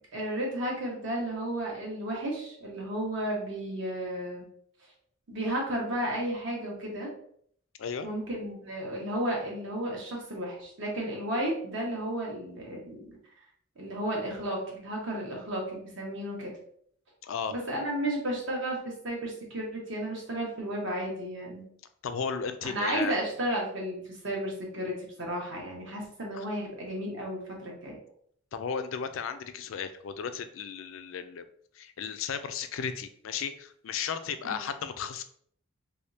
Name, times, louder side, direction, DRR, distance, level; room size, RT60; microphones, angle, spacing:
voice 1, 0.1-4.4 5.3-7.1 8.0-13.1 13.8-16.5 17.5-21.7 22.6-28.0 34.4-34.6, right 1 dB, 65° right, -2 dB, 1.2 m, -33 dB
voice 2, 17.2-17.5 22.0-23.2 26.3-26.5 28.5-31.4 31.7-35.2, left 6 dB, 75° left, 10 dB, 0.4 m, -35 dB
3.4 x 3.2 x 2.7 m, 0.63 s
head